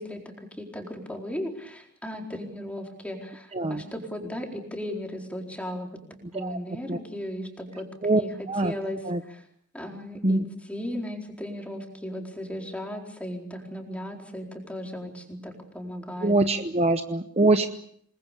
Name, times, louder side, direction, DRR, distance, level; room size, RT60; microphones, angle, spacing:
voice 1, 0.0-5.9 6.3-7.9 8.1-8.3 8.6-9.4 9.7-10.4 10.7-16.3, equal, 5° left, 2 dB, 4.4 m, -36 dB
voice 2, 3.5-3.8 6.3-6.6 6.9-7.0 8.0-8.2 8.5-8.7 9.0-9.2 10.2-10.4 16.2-17.7, right 2 dB, 30° right, 8 dB, 0.9 m, -23 dB
28.0 x 21.0 x 6.9 m, 0.66 s
head